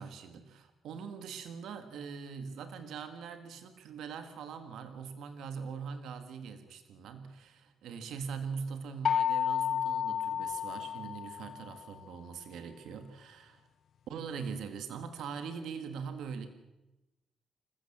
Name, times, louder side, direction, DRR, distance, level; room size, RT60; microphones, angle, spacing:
voice 1, 0.0-13.6 14.1-16.5, right 6 dB, 85° right, 8 dB, 1.8 m, -42 dB
sound 1, 9.0-11.8, left 9 dB, 60° left, 0.7 m, -31 dB
27.0 x 15.0 x 7.4 m, 1.0 s
cardioid pair, 105°, 0 cm